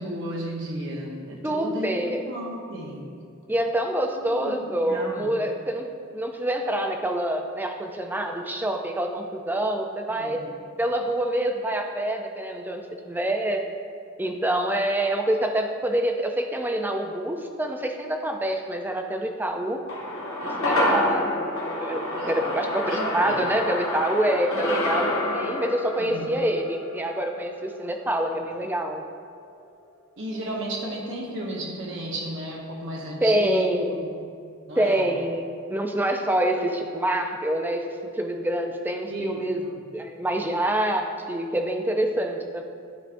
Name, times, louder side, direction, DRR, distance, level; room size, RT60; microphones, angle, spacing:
voice 1, 0.0-1.9 2.3-3.0 4.2-4.6 4.8-5.3 10.2-10.5 20.8-21.2 22.1-22.4 22.9-23.4 26.0-26.4 30.2-33.7 34.0-34.1 34.7-35.1 39.1-39.7, right 1 dB, 65° right, -2 dB, 1.0 m, -34 dB
voice 2, 1.4-2.2 3.5-10.4 10.8-13.6 14.2-19.8 20.4-21.3 21.7-29.1 33.2-34.1 34.8-39.6 39.9-42.6, right 1 dB, 10° right, 4 dB, 0.4 m, -26 dB
sound 1, 19.9-28.4 28.7-28.8, left 1 dB, 85° left, 1.2 m, -28 dB
11.5 x 4.7 x 2.6 m, 2.3 s
head